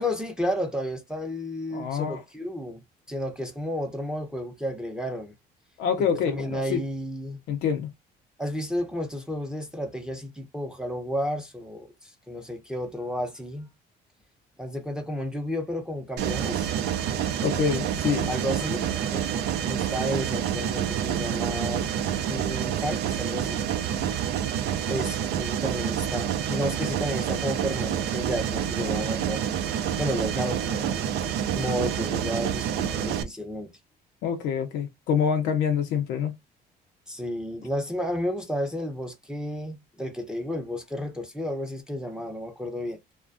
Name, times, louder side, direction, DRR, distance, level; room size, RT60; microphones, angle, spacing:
voice 1, 0.0-2.8 3.1-5.3 6.0-7.4 8.4-13.7 14.6-16.7 18.3-21.9 22.3-23.7 24.9-29.4 30.0-33.7 37.1-43.0, equal, 5° right, 0.6 m, -32 dB
voice 2, 1.7-2.2 5.8-6.8 7.5-7.9 17.4-18.3 34.2-36.4, left 7 dB, 85° left, 0.5 m, -26 dB
Mechanisms, 16.2-33.2, right 9 dB, 75° right, 0.5 m, -28 dB
2.4 x 2.2 x 2.4 m
cardioid pair, 110°, 17 cm